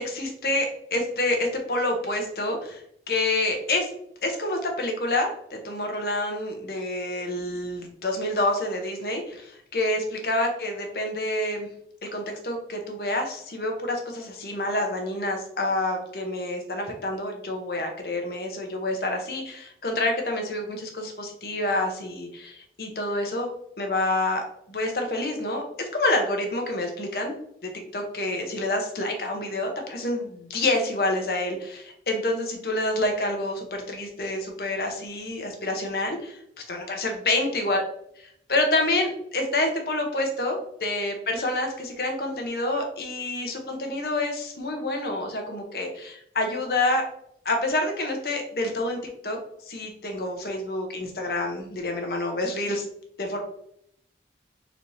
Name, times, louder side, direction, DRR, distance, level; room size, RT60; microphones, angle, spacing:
voice 1, 0.0-3.9 4.2-11.7 12.1-23.5 23.8-27.3 27.6-36.4 36.7-37.8 38.2-47.0 47.4-49.0 49.2-49.4 49.6-52.8 53.2-53.4, left 2 dB, 60° left, 3 dB, 0.9 m, -28 dB
4.1 x 3.2 x 2.7 m, 0.69 s
head